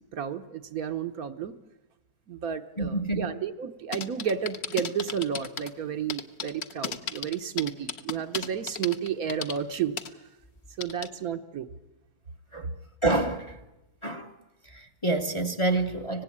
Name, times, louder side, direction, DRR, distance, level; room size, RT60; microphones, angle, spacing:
voice 1, 0.1-1.6 2.3-10.0 10.8-11.7, right 8 dB, 65° right, 8 dB, 1.4 m, -32 dB
voice 2, 2.8-3.3 12.5-12.7 13.0-13.6 14.0-14.3 14.7-16.2, right 2 dB, 20° left, 9 dB, 1.0 m, -27 dB
sound 1, 3.9-5.7 6.1-9.6 10.0-10.1 10.8-11.1, left 6 dB, 45° left, 1.2 m, -34 dB
25.0 x 18.5 x 8.6 m, 1.0 s
omnidirectional pair, 1.7 m